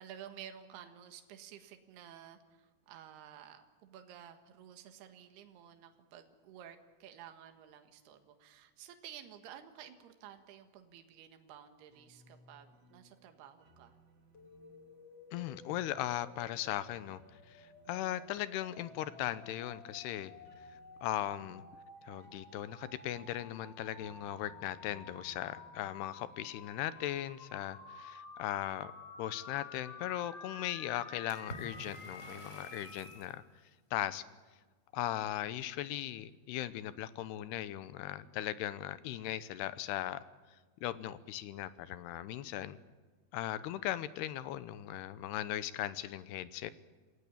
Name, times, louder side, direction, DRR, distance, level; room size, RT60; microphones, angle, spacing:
voice 1, 0.0-14.0, right 9 dB, 70° right, 6 dB, 3.5 m, -53 dB
sound 1, 11.9-27.4, right 2 dB, 45° right, 2.8 m, -64 dB
sound 2, 14.3-33.2, left 4 dB, 40° left, 3.2 m, -52 dB
voice 2, 15.3-20.3 20.7-21.6 22.0-28.9 29.2-33.4 33.9-34.2 34.9-40.2 40.8-42.8 43.3-46.7, left 13 dB, 75° left, 14 dB, 2.8 m, -38 dB
Water / Splash splatter, 31.3-33.4, left 1 dB, 15° left, 5.4 m, -50 dB
27.5 x 17.0 x 8.6 m, 1.4 s
omnidirectional pair, 5.0 m